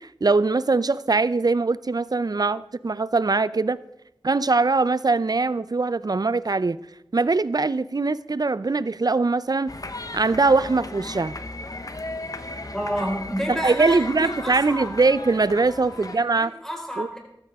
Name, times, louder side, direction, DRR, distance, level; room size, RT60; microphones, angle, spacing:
voice 1, 0.0-3.8 4.2-6.8 7.1-9.7 10.1-11.4 13.5-16.5 17.0-17.1, right 3 dB, 50° right, 0.5 m, -22 dB
sound 1, 9.7-16.2, left 2 dB, 45° left, 1.0 m, -36 dB
voice 2, 12.7-14.9 15.9-17.2, equal, 5° left, 4.5 m, -30 dB
14.5 x 13.5 x 3.5 m
wide cardioid pair, 40°, 9 cm